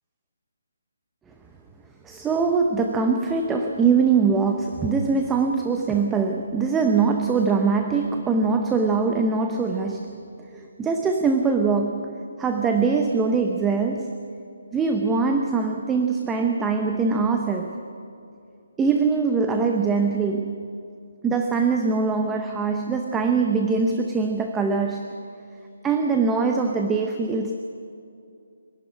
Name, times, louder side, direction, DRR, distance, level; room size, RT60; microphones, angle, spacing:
voice 1, 2.0-14.2 14.7-17.8 18.8-20.7 21.2-25.1 25.8-27.6, right 4 dB, 10° right, 4 dB, 0.7 m, -23 dB
24.0 x 11.5 x 9.8 m, 2.5 s
hypercardioid pair, 170°, 0 cm